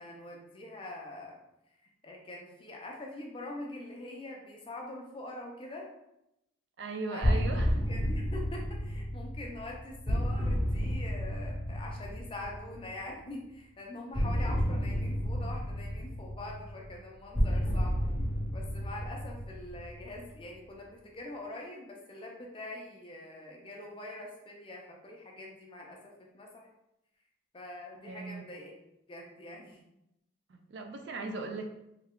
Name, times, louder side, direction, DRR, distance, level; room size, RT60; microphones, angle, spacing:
voice 1, 0.0-1.4 2.0-5.9 7.1-7.4 7.7-18.0 18.5-26.7 27.5-28.7 29.1-29.8, left 2 dB, 25° left, -1 dB, 0.5 m, -44 dB
voice 2, 6.8-8.1 28.1-28.4 30.5-31.7, right 3 dB, 60° right, 5 dB, 0.3 m, -38 dB
sound 1, 7.2-13.0 14.1-20.4, equal, 5° right, 1.2 m, -31 dB
3.2 x 2.3 x 3.6 m, 0.85 s
head